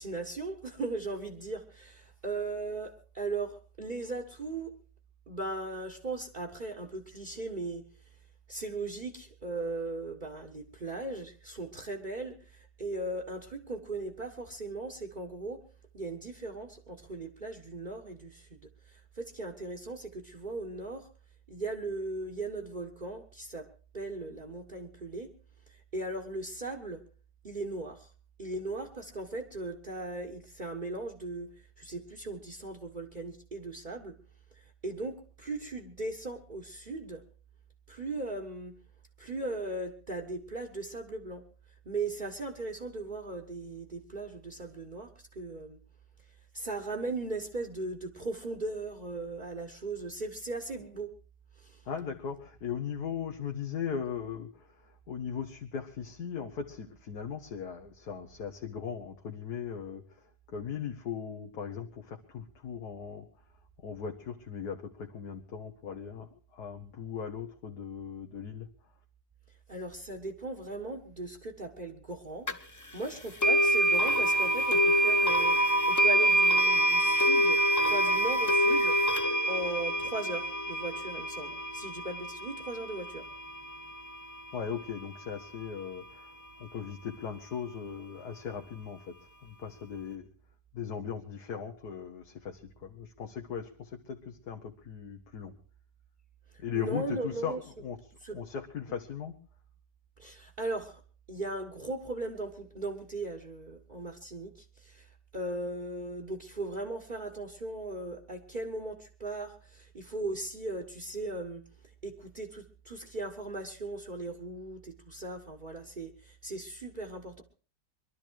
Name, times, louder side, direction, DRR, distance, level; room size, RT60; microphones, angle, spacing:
voice 1, 0.0-4.7 5.3-7.8 8.5-15.6 15.9-18.5 18.9-21.1 21.5-23.7 23.9-25.3 25.7-27.0 27.4-28.1 28.4-31.5 31.8-34.2 34.5-37.2 37.9-38.8 39.2-41.5 41.8-45.8 46.5-51.1 51.6-51.8 69.7-79.0 79.5-83.3 96.7-97.6 98.2-98.4 100.2-101.0 101.3-111.6 112.0-117.4, right 2 dB, 30° right, 4 dB, 1.5 m, -38 dB
voice 2, 51.9-60.0 60.5-63.3 63.8-68.7 84.5-86.3 86.6-89.2 89.4-90.3 90.7-95.5 96.6-99.3, left 7 dB, 65° left, 2 dB, 1.8 m, -38 dB
sound 1, 72.5-72.6 73.4-84.4, right 1 dB, 15° left, 0.7 m, -26 dB
23.0 x 12.0 x 4.7 m, 0.39 s
omnidirectional pair, 1.8 m